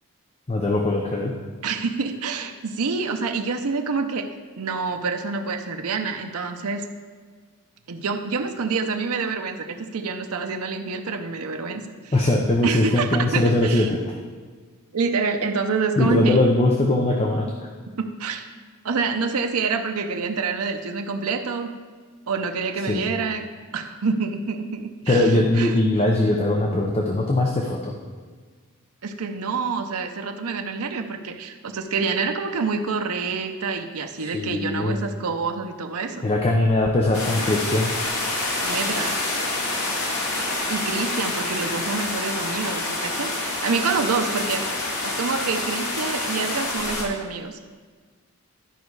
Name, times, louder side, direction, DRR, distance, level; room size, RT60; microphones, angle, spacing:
voice 1, 0.5-1.3 12.1-14.2 16.0-17.5 22.9-23.0 25.1-27.9 34.2-35.0 36.2-37.9, left 2 dB, 30° left, 1 dB, 0.7 m, -21 dB
voice 2, 1.6-4.3 4.6-6.8 7.9-12.3 12.6-13.9 14.9-16.4 18.0-18.5 18.8-21.7 22.3-23.5 23.7-25.8 29.0-36.2 38.6-39.2 40.7-44.7 45.0-47.7, right 4 dB, 75° right, 5 dB, 0.7 m, -27 dB
sound 1, 37.1-47.0, left 2 dB, 80° left, 1.8 m, -27 dB
12.0 x 5.3 x 4.7 m, 1.5 s
head